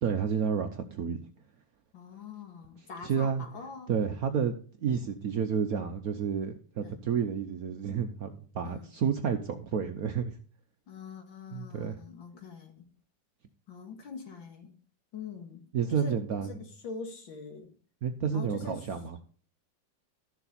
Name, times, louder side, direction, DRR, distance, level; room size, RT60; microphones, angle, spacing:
voice 1, 0.0-1.2 3.0-3.4 3.9-4.5 4.8-10.3 11.5-12.0 15.7-16.6 18.0-19.2, right 7 dB, 60° right, 7 dB, 1.1 m, -30 dB
voice 2, 1.9-3.9 6.8-7.0 8.6-8.9 10.9-12.9 13.7-14.7 15.1-15.6 15.9-17.7 18.3-18.8, left 5 dB, 85° left, 3 dB, 2.8 m, -43 dB
13.0 x 7.0 x 4.0 m, 0.41 s
omnidirectional pair, 2.0 m